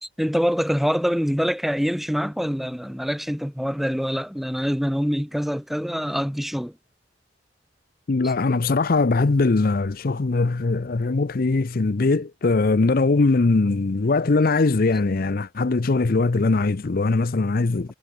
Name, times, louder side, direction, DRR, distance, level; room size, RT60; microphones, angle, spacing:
voice 1, 0.0-6.7, equal, ahead, 1.6 m, -25 dB
voice 2, 8.1-17.9, left 3 dB, 50° left, 0.6 m, -21 dB
head